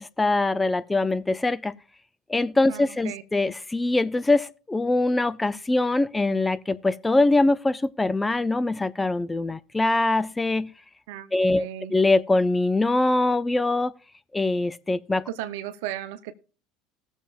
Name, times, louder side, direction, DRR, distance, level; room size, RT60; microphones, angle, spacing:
voice 1, 0.0-1.8 2.3-10.7 11.3-13.9 14.3-15.2, left 2 dB, 15° left, 0.5 m, -23 dB
voice 2, 2.7-3.2 11.1-11.9 15.3-16.3, right 12 dB, 80° right, 0.8 m, -35 dB
19.5 x 7.2 x 2.5 m
hypercardioid pair, 80°, 0 cm